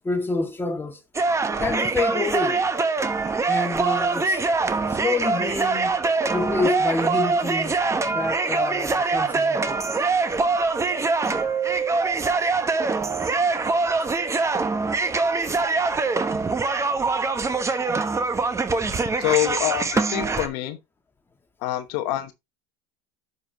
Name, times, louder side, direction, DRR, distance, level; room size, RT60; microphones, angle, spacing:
voice 1, 0.0-1.0 1.6-2.6 3.5-4.4 4.9-6.0 6.3-7.8 8.1-9.9, left 3 dB, 15° left, 1.8 m, -27 dB
sound 1, 1.1-20.5, right 4 dB, 20° right, 1.1 m, -23 dB
voice 2, 19.2-20.8 21.6-22.3, left 15 dB, 65° left, 1.0 m, -25 dB
10.5 x 5.5 x 2.9 m
supercardioid pair, 105°, 16 cm